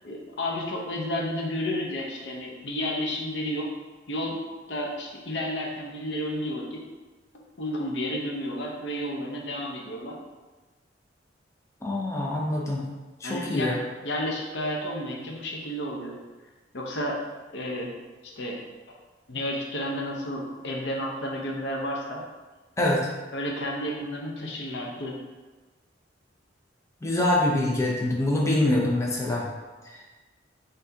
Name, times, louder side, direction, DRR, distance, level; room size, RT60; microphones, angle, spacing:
voice 1, 0.0-3.7 4.1-4.4 4.7-6.8 7.3-10.2 13.2-13.7 14.0-16.1 16.7-17.2 17.5-17.9 18.2-18.6 18.9-19.0 19.3-22.2 23.3-25.2, left 1 dB, 65° left, -1 dB, 0.7 m, -31 dB
voice 2, 11.8-12.8 13.2-13.7 22.8-23.1 27.0-29.5 29.9-30.0, left 1 dB, 15° left, -3 dB, 0.5 m, -25 dB
5.7 x 2.7 x 2.7 m, 1.2 s
head